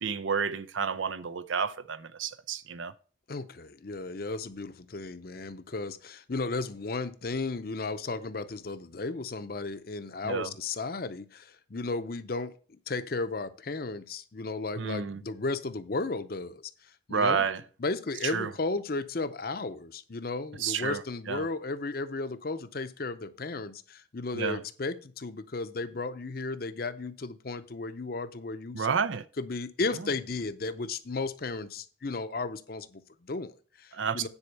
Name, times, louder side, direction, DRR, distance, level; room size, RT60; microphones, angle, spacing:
voice 1, 0.0-2.9 10.2-10.5 14.8-15.2 17.1-17.6 18.3-18.5 20.6-21.0 21.3-21.4 24.3-24.6 28.7-29.2 33.9-34.3, right 6 dB, 85° right, 0.6 m, -30 dB
voice 2, 3.3-16.7 17.1-17.5 17.8-28.9 29.4-34.3, left 3 dB, 50° left, 0.6 m, -34 dB
9.9 x 4.2 x 6.6 m
head